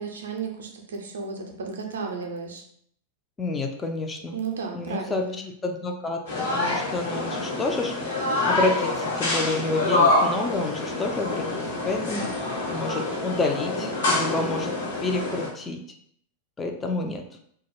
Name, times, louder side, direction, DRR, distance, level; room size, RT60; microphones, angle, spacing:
voice 1, 0.0-2.6 4.3-5.5, right 5 dB, 65° right, 3 dB, 0.4 m, -33 dB
voice 2, 3.4-4.4 4.7-5.2 5.6-7.9 8.5-11.5 11.8-12.3 12.7-14.7 15.0-15.8 16.6-17.2, left 3 dB, 15° left, 3 dB, 0.3 m, -29 dB
sound 1, 6.3-15.5, left 2 dB, 65° left, 1.0 m, -26 dB
2.2 x 2.0 x 3.1 m, 0.65 s
figure-of-eight pair, 90°, 0 cm